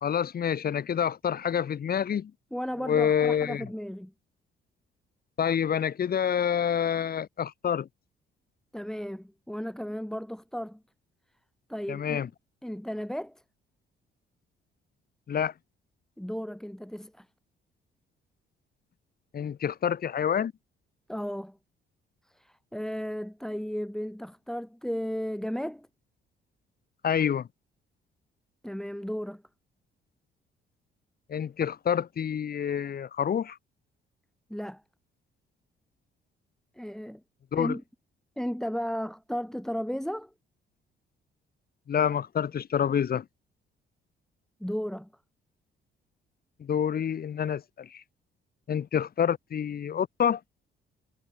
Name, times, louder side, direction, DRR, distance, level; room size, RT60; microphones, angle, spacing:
voice 1, 0.0-2.3 2.8-3.6 5.4-7.9 11.9-12.3 15.3-15.5 19.3-20.5 27.0-27.5 31.3-33.6 37.5-37.8 41.9-43.2 46.6-48.0 48.7-50.4, left 8 dB, 50° left, 1.6 m, -27 dB
voice 2, 2.5-4.1 8.7-10.8 11.7-12.2 12.6-13.4 16.2-17.3 21.1-21.6 22.3-25.9 28.6-29.4 34.5-34.8 36.8-37.2 37.5-37.8 38.4-40.3 44.6-45.1, equal, ahead, 2.6 m, -34 dB
cardioid pair, 90°, 20 cm